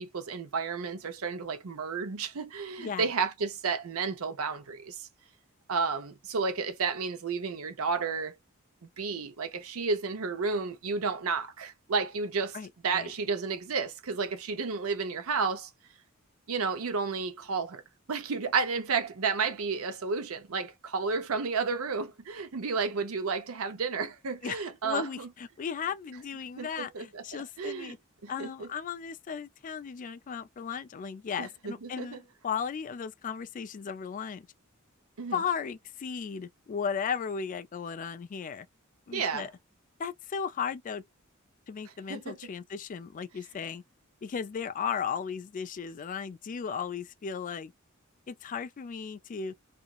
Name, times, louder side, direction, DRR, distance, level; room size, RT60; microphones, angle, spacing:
voice 1, 0.0-5.1 5.7-8.3 9.0-12.6 12.8-15.7 16.5-17.8 18.1-25.3 26.6-27.2 27.6-28.0 28.2-28.7 31.4-32.2 35.2-35.4 39.1-39.5 42.1-42.4, right 5 dB, 90° right, 0.6 m, -32 dB
voice 2, 2.8-3.1 12.5-13.1 24.4-28.0 28.3-34.5 35.3-38.7 39.1-39.5 40.0-41.0 41.7-43.8 44.2-47.7 48.3-49.5, left 6 dB, 40° left, 0.3 m, -36 dB
2.9 x 2.5 x 2.3 m
head